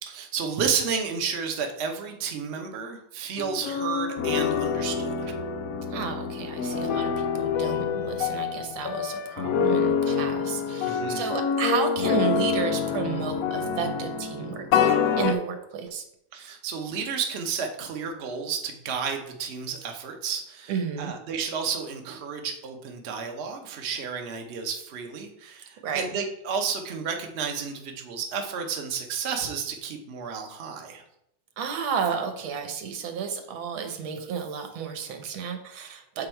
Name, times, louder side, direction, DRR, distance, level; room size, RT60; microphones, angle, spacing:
voice 1, 0.0-5.3 10.8-11.2 16.3-20.7 21.0-31.0, right 6 dB, 50° right, 3 dB, 0.8 m, -31 dB
sound 1, 3.4-15.3, left 6 dB, 90° left, 0.7 m, -26 dB
voice 2, 5.9-14.7 15.2-16.0 20.7-21.1 25.8-26.1 31.6-36.3, right 6 dB, 90° right, 6 dB, 1.7 m, -32 dB
7.0 x 3.9 x 4.5 m, 0.78 s
omnidirectional pair, 2.1 m